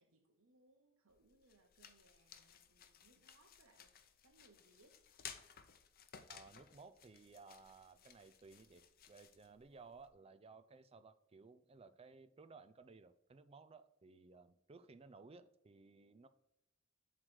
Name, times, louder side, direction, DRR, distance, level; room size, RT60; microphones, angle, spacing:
voice 1, 0.0-3.9 4.2-5.0 9.5-9.6, right 2 dB, 75° right, 3 dB, 0.9 m, -70 dB
sound 1, 1.1-10.1, left 8 dB, 45° left, 0.6 m, -58 dB
voice 2, 6.3-16.3, right 4 dB, 30° right, 10 dB, 0.4 m, -59 dB
7.5 x 3.3 x 6.2 m, 0.88 s
head